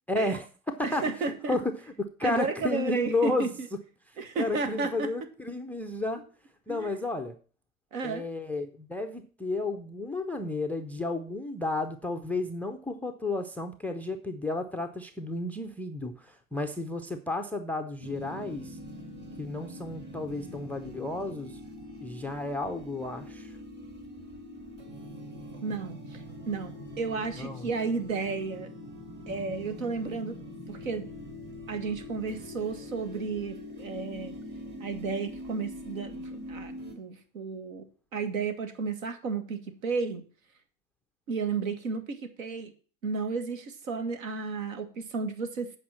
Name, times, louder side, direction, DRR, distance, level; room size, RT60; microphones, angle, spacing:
voice 1, 0.1-1.7 2.0-3.5 4.4-6.2 6.7-7.4 8.0-18.8 19.4-21.6 22.0-23.6 27.4-27.7, left 2 dB, 5° left, 9 dB, 0.4 m, -32 dB
voice 2, 0.8-1.6 2.2-3.7 4.2-5.1 6.7-6.9 7.9-8.3 25.6-26.2 26.5-28.7 29.3-30.4 30.7-31.1 31.7-34.3 34.8-37.9 38.1-40.2 41.3-42.7 43.0-45.7, right 4 dB, 70° right, 8 dB, 1.8 m, -33 dB
sound 1, 18.0-36.9, left 1 dB, 25° right, 2.5 m, -43 dB
8.5 x 5.1 x 7.3 m, 0.40 s
hypercardioid pair, 95°, 43 cm